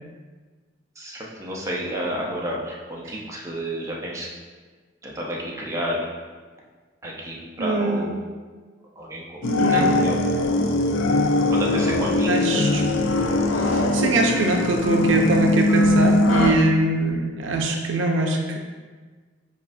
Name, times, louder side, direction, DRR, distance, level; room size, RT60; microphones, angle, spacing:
voice 1, 1.0-4.3 5.0-6.0 7.0-8.1 9.0-10.2 11.5-12.6, equal, 15° right, -3 dB, 0.6 m, -31 dB
voice 2, 7.6-8.2 9.4-10.4 10.7-10.9 11.9-12.9 13.5-18.6, right 2 dB, 75° right, 2 dB, 0.5 m, -23 dB
sound 1, 9.4-16.5, left 2 dB, 80° left, 0.4 m, -21 dB
7.0 x 2.4 x 2.6 m, 1.4 s
head